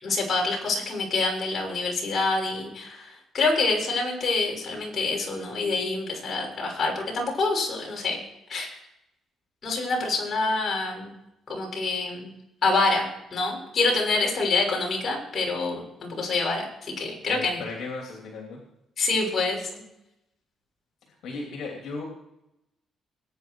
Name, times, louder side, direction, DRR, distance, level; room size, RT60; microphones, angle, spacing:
voice 1, 0.0-8.2 8.5-8.8 9.6-11.1 11.5-12.4 12.6-17.6 19.0-19.7, left 3 dB, 45° left, 0 dB, 6.3 m, -26 dB
voice 2, 17.3-18.6 21.2-22.0, left 3 dB, 75° left, 0 dB, 3.1 m, -36 dB
21.5 x 9.4 x 4.7 m, 0.88 s
cardioid pair, 90°, 0 cm